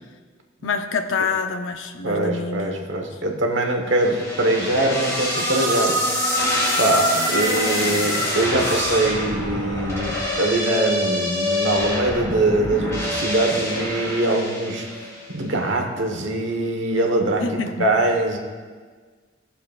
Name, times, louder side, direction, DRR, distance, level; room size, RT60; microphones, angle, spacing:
voice 1, 0.6-3.2 7.1-7.3 17.4-17.9, left 4 dB, 80° left, 6 dB, 0.6 m, -27 dB
voice 2, 2.0-6.0 6.8-14.9 15.3-18.4, right 2 dB, 70° right, 2 dB, 1.2 m, -22 dB
sound 1, 4.0-15.3, equal, 15° left, 2.1 m, -25 dB
17.0 x 7.0 x 2.4 m, 1.5 s
head